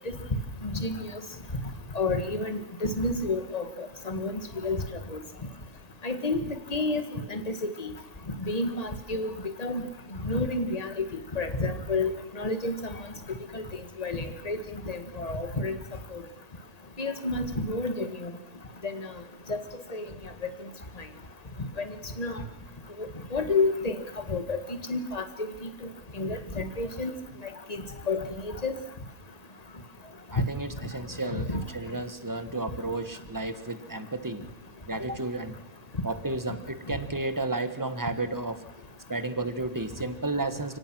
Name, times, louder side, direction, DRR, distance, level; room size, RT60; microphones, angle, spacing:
voice 1, 0.6-1.1 2.0-4.3 4.6-4.8 5.1-5.2 6.0-6.4 6.7-7.0 7.3-7.9 8.5-9.3 9.6-9.8 10.2-11.1 11.3-12.7 13.5-13.6 14.0-14.6 14.9-15.8 17.0-18.3 18.8-19.1 19.5-19.6 19.9-20.0 21.8-21.9 22.2-22.4 23.0-24.0 24.3-24.6 24.9-25.2 26.2-27.1 28.1-28.7 31.3-31.6, left 3 dB, 25° left, 8 dB, 1.7 m, -29 dB
voice 2, 30.3-34.5 34.9-35.5 36.0-38.6 39.1-40.8, right 2 dB, 15° right, 10 dB, 1.3 m, -32 dB
30.0 x 17.5 x 6.2 m, 0.82 s
omnidirectional pair, 1.6 m